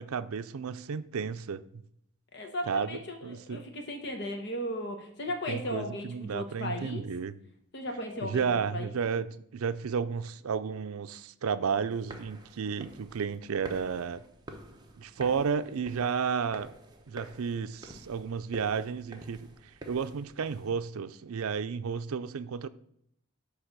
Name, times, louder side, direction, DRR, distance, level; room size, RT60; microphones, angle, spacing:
voice 1, 0.0-1.6 2.7-3.6 5.5-7.3 8.2-9.3 9.5-14.2 15.0-16.7 17.1-19.5 19.9-22.7, right 6 dB, 80° right, 0.5 m, -32 dB
voice 2, 2.3-7.1 7.7-8.9, left 1 dB, 50° left, 1.1 m, -36 dB
sound 1, 11.9-20.7, right 1 dB, 20° right, 0.8 m, -49 dB
9.7 x 3.4 x 6.6 m
head